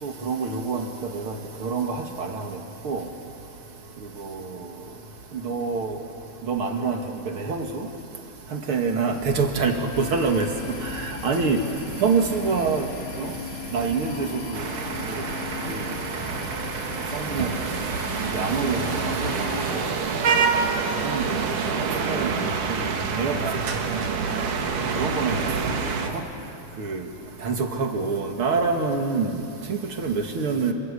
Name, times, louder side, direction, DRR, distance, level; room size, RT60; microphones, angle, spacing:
voice 1, 0.0-0.8 1.1-1.3 1.6-2.3 2.8-3.0 5.4-6.0 6.5-7.0 7.4-7.7 8.5-10.5 10.9-11.6 12.0-12.8 13.2-13.3 13.7-14.3 15.7-15.8 17.1-17.5 18.3-18.8 19.2-19.5 19.7-19.8 21.0-21.2 21.7-22.3 22.7-22.8 23.2-23.4 25.0-25.4 26.8-27.0 27.4-29.3 29.7-30.7, right 5 dB, 45° right, 4 dB, 2.4 m, -25 dB
sound 1, 9.2-21.0, right 1 dB, 15° right, 3.6 m, -42 dB
sound 2, 9.9-19.7, left 7 dB, 45° left, 2.0 m, -38 dB
sound 3, 14.5-26.1, right 5 dB, 80° right, 3.3 m, -27 dB
30.0 x 22.5 x 8.3 m, 2.7 s
omnidirectional pair, 3.6 m